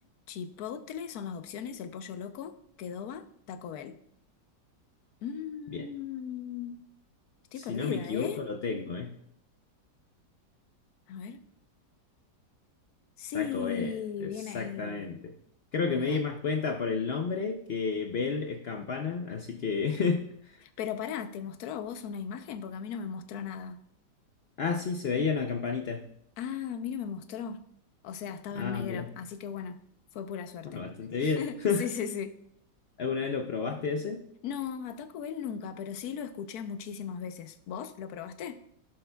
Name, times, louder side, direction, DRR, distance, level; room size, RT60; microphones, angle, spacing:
voice 1, 0.3-4.0 5.2-6.8 7.5-8.4 11.1-11.4 13.2-15.2 15.8-16.2 20.6-23.8 26.4-27.6 28.0-29.8 30.1-30.8 31.2-32.3 34.4-38.6, left 7 dB, 65° left, 9 dB, 1.1 m, -37 dB
voice 2, 7.6-9.2 13.3-13.9 14.2-15.3 15.7-20.6 24.6-26.1 28.6-29.1 30.6-31.8 33.0-34.2, left 5 dB, 85° left, 4 dB, 0.5 m, -31 dB
15.5 x 6.6 x 2.3 m, 0.70 s
omnidirectional pair, 1.9 m